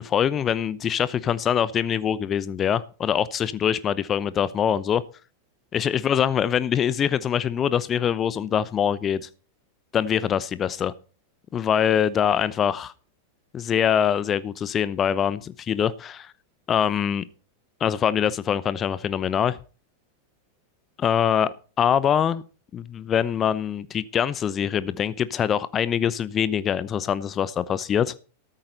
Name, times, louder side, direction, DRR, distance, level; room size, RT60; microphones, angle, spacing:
voice 1, 0.0-5.0 5.7-9.3 9.9-10.9 11.5-12.9 13.5-16.3 16.7-17.2 17.8-19.6 21.0-22.4 22.7-28.1, left 8 dB, 25° left, 0.8 m, -24 dB
14.0 x 13.0 x 4.0 m
figure-of-eight pair, 90°, 0 cm